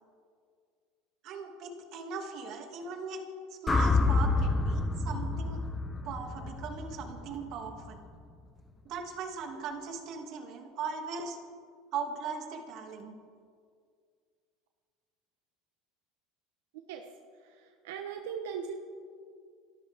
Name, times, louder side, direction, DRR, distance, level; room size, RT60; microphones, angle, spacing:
voice 1, 1.2-3.2 3.6-5.7 6.0-8.0 8.8-11.4 11.9-13.2, right 5 dB, 55° right, 3 dB, 2.4 m, -39 dB
sound 1, 3.7-7.9, left 3 dB, 20° left, 1.0 m, -29 dB
voice 2, 17.4-18.8, right 7 dB, 85° right, 4 dB, 1.1 m, -39 dB
29.0 x 12.5 x 3.7 m, 2.1 s
supercardioid pair, 120°, 0 cm